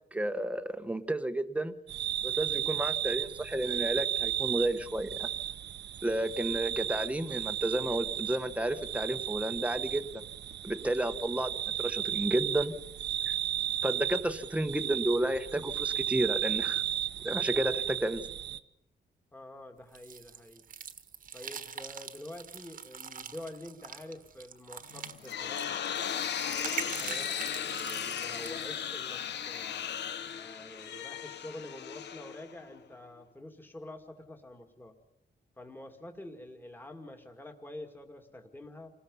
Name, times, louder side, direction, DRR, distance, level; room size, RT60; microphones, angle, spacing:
voice 1, 0.1-1.7 2.2-5.3 6.0-10.0 10.6-11.5 11.8-12.7 13.8-16.8 17.2-18.2, right 1 dB, 5° right, 10 dB, 1.1 m, -31 dB
sound 1, 1.9-18.6, right 10 dB, 80° right, 0.9 m, -34 dB
voice 2, 17.5-17.9 19.3-20.7 21.3-25.9 26.4-29.9 30.3-34.9 35.6-38.9, left 1 dB, 10° left, 4 dB, 2.3 m, -47 dB
sound 2, 19.9-28.6, right 7 dB, 50° right, 1.4 m, -43 dB
Rusty Spring, 24.9-32.8, left 8 dB, 80° left, 1.1 m, -36 dB
28.0 x 19.5 x 5.5 m, 0.80 s
wide cardioid pair, 155°, 18 cm